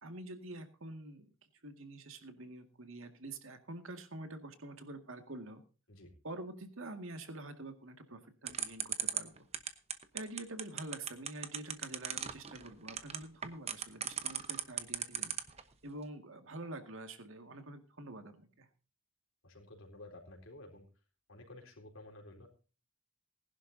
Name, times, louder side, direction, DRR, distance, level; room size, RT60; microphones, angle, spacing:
voice 1, 0.0-1.3 1.6-5.6 6.2-9.4 10.1-15.4 15.8-18.7, right 2 dB, 70° right, 7 dB, 2.0 m, -47 dB
sound 1, 8.5-15.6, right 9 dB, 30° right, 1.0 m, -36 dB
voice 2, 19.4-20.9 21.3-22.5, left 2 dB, 70° left, 1 dB, 4.1 m, -52 dB
19.5 x 11.5 x 2.7 m, 0.35 s
head